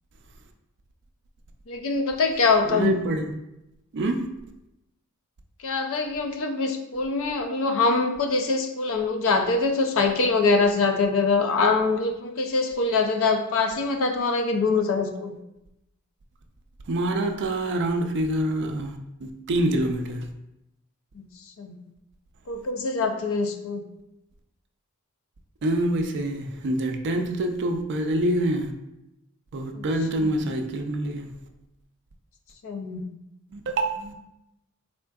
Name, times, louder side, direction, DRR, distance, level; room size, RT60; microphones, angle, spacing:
voice 1, 1.7-3.0 5.6-15.4 21.1-21.2 21.6-21.8 22.5-23.8 29.7-29.8 30.2-30.4 32.6-33.0, left 4 dB, 65° left, 6 dB, 0.5 m, -24 dB
voice 2, 2.7-3.3 3.9-4.3 16.9-20.3 25.6-28.8 29.5-31.3 33.5-34.1, right 1 dB, 55° right, 4 dB, 0.4 m, -26 dB
3.6 x 3.5 x 2.3 m, 0.88 s
head